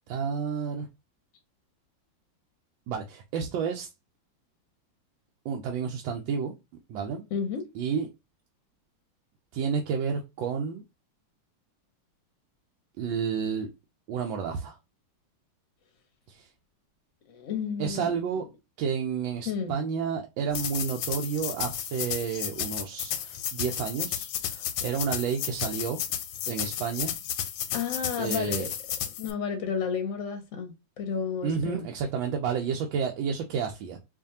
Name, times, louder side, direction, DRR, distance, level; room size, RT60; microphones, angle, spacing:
voice 1, 0.1-0.9 2.9-3.9 5.4-6.5 6.9-7.2 7.7-8.1 9.5-10.8 13.0-13.7 14.1-14.8 16.3-16.5 17.8-18.5 18.8-26.0 26.5-27.1 28.2-28.7 31.4-34.0, right 6 dB, 85° right, 1.4 m, -30 dB
voice 2, 7.3-7.6 17.3-18.1 19.5-19.7 27.7-28.7 29.2-31.8, left 6 dB, 60° left, 0.8 m, -31 dB
sound 1, 20.5-29.3, left 10 dB, 90° left, 1.3 m, -33 dB
4.8 x 2.5 x 2.7 m
omnidirectional pair, 2.0 m